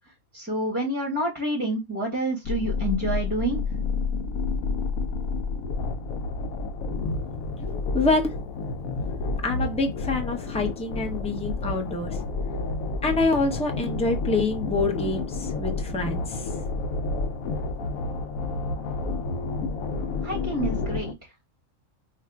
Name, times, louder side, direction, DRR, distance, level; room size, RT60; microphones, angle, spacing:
voice 1, 0.3-3.6 20.2-21.1, right 1 dB, 10° right, 0.9 m, -28 dB
sound 1, 2.4-21.1, left 3 dB, 80° left, 1.0 m, -30 dB
voice 2, 7.9-8.4 9.4-12.2 13.0-16.5, left 3 dB, 10° left, 0.4 m, -26 dB
4.8 x 2.4 x 2.3 m
omnidirectional pair, 1.4 m